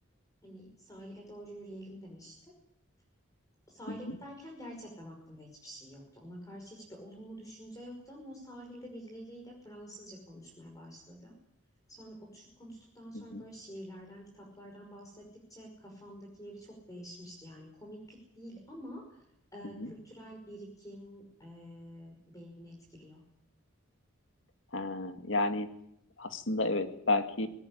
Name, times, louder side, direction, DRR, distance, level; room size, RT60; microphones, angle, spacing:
voice 1, 0.4-2.3 3.7-11.3 12.0-15.2 15.5-19.2 19.5-23.2, equal, 15° left, 1 dB, 5.6 m, -48 dB
voice 2, 3.9-4.2 13.1-13.4 19.6-19.9 24.7-25.7 26.2-27.5, left 2 dB, 70° left, 8 dB, 2.2 m, -32 dB
20.5 x 19.0 x 10.0 m, 0.76 s
head